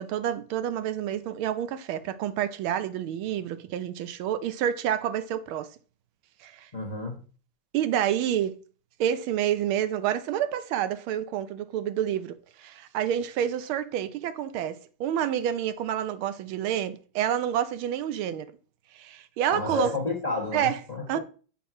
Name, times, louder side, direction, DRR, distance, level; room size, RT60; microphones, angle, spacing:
voice 1, 0.0-5.7 6.4-6.7 7.7-8.6 9.0-18.5 18.9-20.0 20.5-20.8 21.1-21.2, right 10 dB, 80° right, 1.5 m, -28 dB
voice 2, 6.7-7.2 19.5-21.2, left 3 dB, 25° left, 0.9 m, -31 dB
6.9 x 4.3 x 4.8 m
omnidirectional pair, 2.3 m